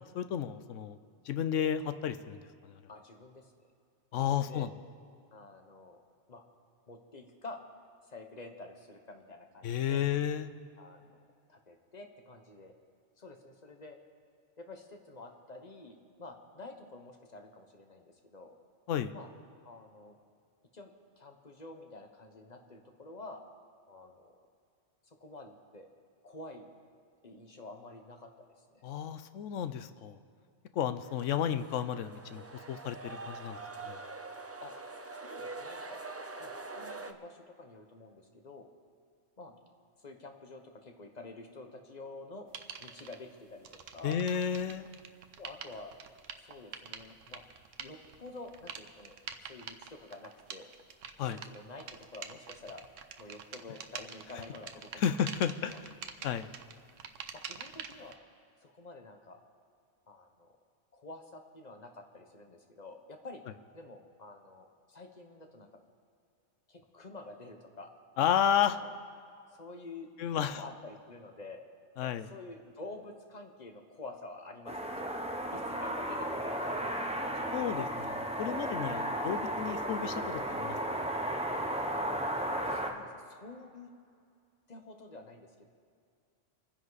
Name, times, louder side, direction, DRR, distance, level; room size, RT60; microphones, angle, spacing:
voice 1, 0.1-1.0 1.3-2.7 4.1-4.7 9.6-10.5 18.9-19.1 28.8-30.2 30.7-33.6 33.8-34.0 44.0-44.9 51.2-51.4 55.0-55.9 56.2-56.5 68.2-68.8 70.2-70.6 72.0-72.3 77.5-80.8, left 9 dB, 85° left, 11 dB, 1.0 m, -32 dB
voice 2, 2.9-3.7 4.1-4.7 5.3-6.0 6.3-6.4 6.9-7.6 8.1-10.0 10.8-11.2 11.5-12.7 13.2-14.0 14.6-18.6 19.1-19.3 19.6-20.2 20.7-23.4 23.9-24.3 25.0-25.9 26.2-26.6 27.2-28.8 34.6-34.7 35.1-36.0 36.4-38.7 39.4-39.6 40.0-42.5 42.8-43.7 43.9-44.2 45.4-45.9 46.3-47.4 47.8-49.2 49.5-50.7 51.2-52.8 53.2-55.3 55.7-55.8 57.3-58.2 58.6-59.4 60.1-60.5 60.9-63.4 63.7-65.7 66.7-67.9 68.4-68.9 69.5-70.1 70.4-71.6 72.0-75.1 75.5-77.6 78.5-79.0 81.7-81.9 82.6-83.9 84.7-85.7, left 2 dB, 35° left, 4 dB, 1.3 m, -49 dB
sound 1, 31.0-37.1, right 3 dB, 25° right, 0.3 m, -44 dB
sound 2, 42.5-43.2 43.6-58.1, right 7 dB, 85° right, 1.1 m, -46 dB
sound 3, 74.7-82.9, right 1 dB, 5° right, 0.9 m, -34 dB
26.0 x 10.0 x 4.1 m, 2.3 s
omnidirectional pair, 1.3 m